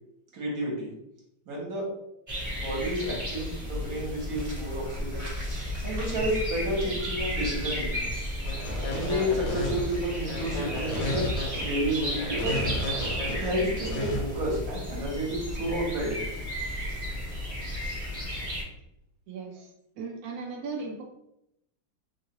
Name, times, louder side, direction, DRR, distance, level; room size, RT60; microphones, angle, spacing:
voice 1, 0.3-0.9 1.5-1.8 2.6-5.3 5.8-8.1 8.9-11.3 11.6-12.6 13.3-16.2, equal, 55° right, -3 dB, 1.4 m, -31 dB
sound 1, 2.3-18.6, equal, 15° right, 0.8 m, -33 dB
sound 2, 8.4-14.2, left 1 dB, 70° left, 1.5 m, -32 dB
voice 2, 19.3-19.7 20.0-21.0, right 4 dB, 75° right, 0 dB, 0.8 m, -37 dB
3.6 x 2.4 x 2.9 m, 0.80 s
omnidirectional pair, 2.1 m